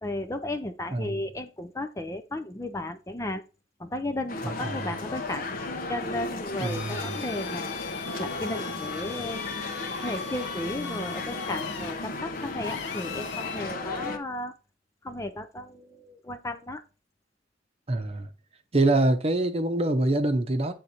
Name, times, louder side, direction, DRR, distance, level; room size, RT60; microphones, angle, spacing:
voice 1, 0.0-3.4 3.8-5.5 5.9-7.8 8.2-9.4 10.0-14.5 15.0-16.8, left 1 dB, 15° left, 0.5 m, -34 dB
sound 1, 4.3-14.2, left 2 dB, 50° left, 0.9 m, -34 dB
voice 2, 4.4-4.8 6.6-7.1 17.9-18.3 18.7-20.7, right 2 dB, 35° right, 0.8 m, -25 dB
Drill, 6.6-13.7, left 7 dB, 80° left, 0.9 m, -40 dB
8.4 x 3.7 x 4.3 m
head